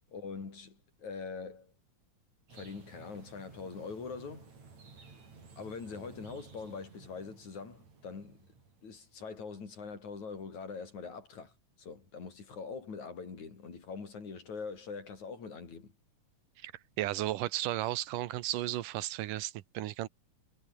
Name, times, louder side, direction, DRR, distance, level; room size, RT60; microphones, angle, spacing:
voice 1, 0.1-1.7 2.5-4.5 4.9-5.1 5.6-8.5 8.8-11.5 11.8-15.9, left 5 dB, 60° left, 5.9 m, -43 dB
sound 1, 2.5-9.4, right 4 dB, 55° right, 6.4 m, -55 dB
voice 2, 17.0-20.1, right 15 dB, 85° right, 2.6 m, -34 dB
omnidirectional pair, 3.7 m